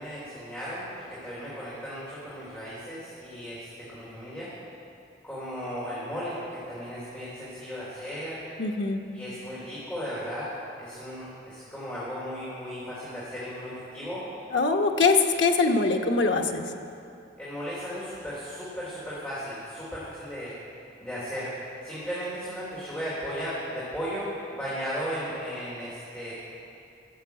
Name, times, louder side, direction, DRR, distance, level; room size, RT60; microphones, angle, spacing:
voice 1, 0.0-4.5 5.2-8.4 9.1-10.5 10.8-14.2 17.4-20.5 21.0-21.5 21.8-26.4, equal, 10° left, -10 dB, 2.9 m, -36 dB
voice 2, 8.6-9.0 14.5-16.6, left 4 dB, 85° left, 3 dB, 1.0 m, -23 dB
15.0 x 7.1 x 7.9 m, 2.6 s
head